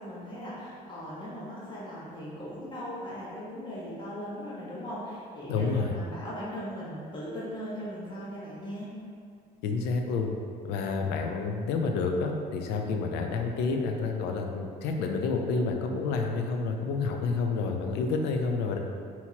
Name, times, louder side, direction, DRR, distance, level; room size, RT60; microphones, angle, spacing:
voice 1, 0.0-8.9, equal, 30° left, -9 dB, 1.2 m, -39 dB
voice 2, 5.5-5.9 9.6-10.3 10.6-18.8, left 4 dB, 90° left, 3 dB, 0.5 m, -29 dB
5.7 x 2.9 x 2.8 m, 2.3 s
cardioid pair, 110°, 17 cm